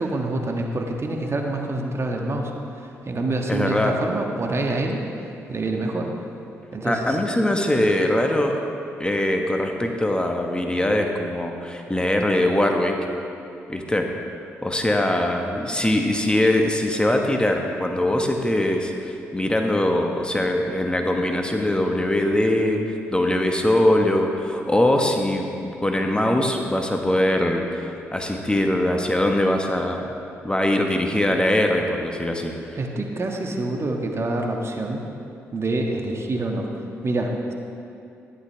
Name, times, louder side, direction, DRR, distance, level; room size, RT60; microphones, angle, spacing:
voice 1, 0.0-5.0 5.5-6.1 6.7-7.2 32.7-35.0 35.5-36.7 37.0-37.5, right 2 dB, 45° right, 1 dB, 1.5 m, -26 dB
voice 2, 3.5-4.0 6.8-8.6 9.0-13.0 13.7-14.1 14.6-30.0 30.4-32.5, left 1 dB, 15° left, 2 dB, 1.4 m, -22 dB
14.0 x 11.0 x 3.4 m, 2.6 s
hypercardioid pair, 40°, 7 cm